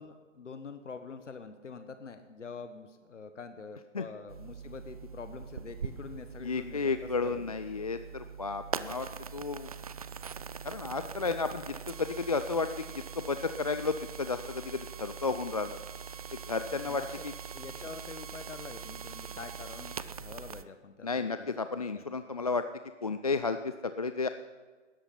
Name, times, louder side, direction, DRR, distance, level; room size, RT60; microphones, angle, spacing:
voice 1, 0.0-7.5 16.8-17.2 17.5-21.6 21.9-22.0, left 5 dB, 65° left, 9 dB, 1.3 m, -45 dB
sound 1, 4.3-20.6, right 6 dB, 30° right, 0.5 m, -42 dB
voice 2, 6.4-9.1 9.3-9.7 10.6-15.8 16.5-17.3 21.0-22.6 23.0-24.3, left 4 dB, 30° left, 10 dB, 0.4 m, -32 dB
18.0 x 13.5 x 5.7 m, 1.4 s
figure-of-eight pair, 130°, 39 cm